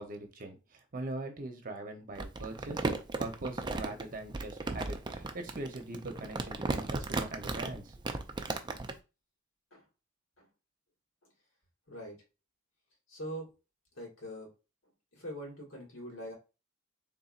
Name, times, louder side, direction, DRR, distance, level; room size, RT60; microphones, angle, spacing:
voice 1, 0.0-2.9 3.2-7.9, right 2 dB, 45° right, 5 dB, 0.8 m, -41 dB
Crumpling crinkling, 2.2-9.0, right 3 dB, 20° right, 0.4 m, -35 dB
voice 2, 11.9-12.2 13.1-13.5 13.9-14.5 15.1-16.3, equal, 80° left, -1 dB, 1.9 m, -43 dB
4.1 x 3.6 x 2.5 m, 0.30 s
head